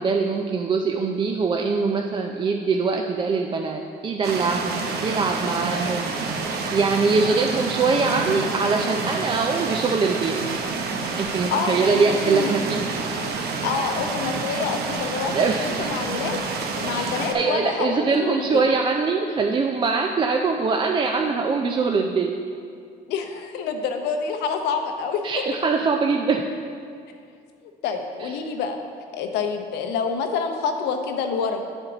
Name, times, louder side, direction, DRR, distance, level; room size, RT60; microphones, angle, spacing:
voice 1, 0.0-6.1 6.7-10.4 11.2-12.8 15.3-15.9 17.0-22.3 25.2-26.5 28.2-28.3, right 4 dB, 30° right, 2 dB, 0.4 m, -23 dB
sound 1, 4.2-17.3, right 4 dB, 70° right, 0.8 m, -28 dB
voice 2, 11.5-12.5 13.6-18.6 23.1-25.2 25.5-25.6 27.6-28.8 29.1-31.6, left 5 dB, 85° left, 5 dB, 0.7 m, -27 dB
9.7 x 4.4 x 3.9 m, 2.3 s
cardioid pair, 110°, 17 cm